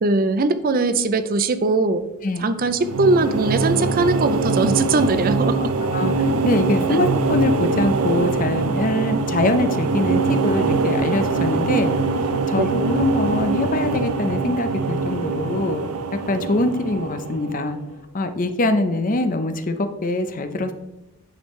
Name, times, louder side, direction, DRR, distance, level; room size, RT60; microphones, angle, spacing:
voice 1, 0.0-2.1 2.4-5.7 6.9-7.0 12.6-12.7, right 3 dB, 40° right, 11 dB, 0.5 m, -20 dB
sound 1, 2.6-17.9, right 3 dB, 80° right, 0.6 m, -23 dB
voice 2, 5.8-11.9 12.5-15.8 16.3-17.8 18.1-20.7, left 2 dB, 40° left, 8 dB, 0.6 m, -23 dB
9.3 x 6.3 x 3.2 m, 0.97 s
head